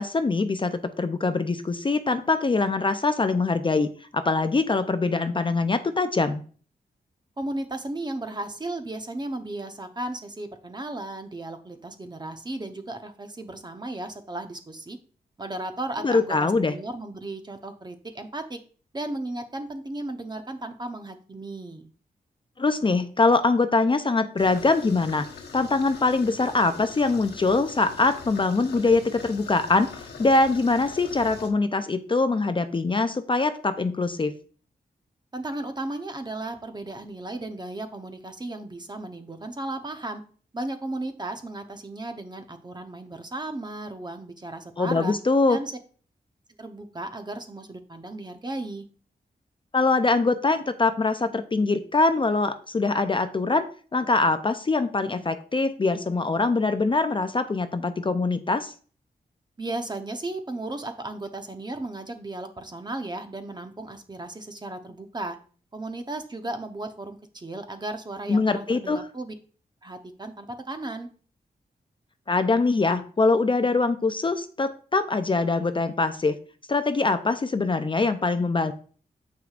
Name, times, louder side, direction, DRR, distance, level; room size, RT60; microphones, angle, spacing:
voice 1, 0.0-6.4 16.0-16.7 22.6-25.3 25.5-29.9 30.2-34.3 44.8-45.6 49.7-53.7 53.9-58.7 68.3-69.0 72.3-76.4 76.7-78.7, left 3 dB, 30° left, 10 dB, 0.5 m, -23 dB
voice 2, 7.4-15.0 15.4-18.6 18.9-21.9 35.3-40.2 40.5-45.1 45.5-45.7 46.6-48.9 59.6-65.4 65.7-69.3 69.8-71.1, right 2 dB, 25° right, 7 dB, 0.9 m, -35 dB
sound 1, 24.4-31.5, left 5 dB, 85° left, 1.2 m, -43 dB
7.5 x 5.9 x 2.5 m, 0.42 s
cardioid pair, 70°, 17 cm